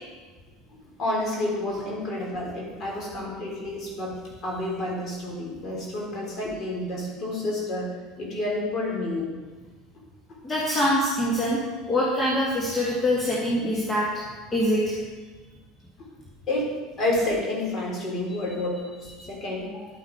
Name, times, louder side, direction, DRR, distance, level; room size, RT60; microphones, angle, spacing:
voice 1, 1.0-4.2 4.4-9.3 16.5-19.9, left 1 dB, 35° left, -2 dB, 3.9 m, -29 dB
voice 2, 10.4-11.6 11.9-14.1 14.5-15.0, equal, 20° left, -5 dB, 2.3 m, -24 dB
11.0 x 8.7 x 4.8 m, 1.4 s
figure-of-eight pair, 70°, 0 cm